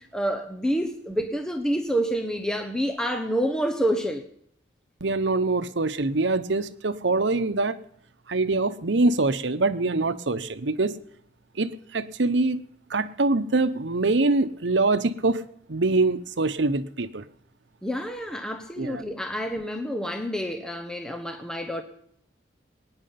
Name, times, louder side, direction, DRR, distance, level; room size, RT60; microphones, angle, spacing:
voice 1, 0.0-4.2 17.8-21.8, equal, 5° left, 0.9 m, -28 dB
voice 2, 5.0-7.7 8.3-10.9 11.6-12.6 12.9-15.4 15.7-17.2 18.8-19.0, right 3 dB, 80° right, 0.9 m, -24 dB
21.0 x 9.8 x 5.8 m
head